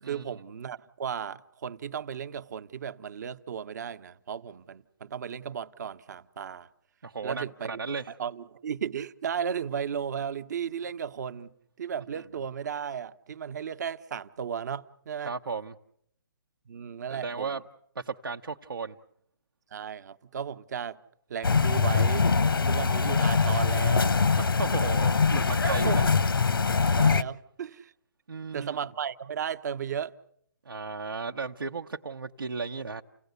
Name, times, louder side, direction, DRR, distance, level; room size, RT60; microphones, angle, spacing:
voice 1, 0.0-6.7 7.2-7.8 8.2-15.3 16.7-17.6 19.7-21.0 21.3-22.3 22.6-24.1 25.7-26.1 26.9-27.9 28.5-30.2, right 8 dB, 50° right, 0.9 m, -35 dB
voice 2, 7.0-8.1 12.1-12.2 15.2-15.7 17.1-17.6 18.0-19.0 24.4-25.9 28.3-28.8 30.6-33.0, right 4 dB, 85° right, 0.9 m, -35 dB
sound 1, 21.4-27.2, left 5 dB, 90° left, 0.9 m, -23 dB
30.0 x 17.0 x 8.1 m
hypercardioid pair, 155°, 12 cm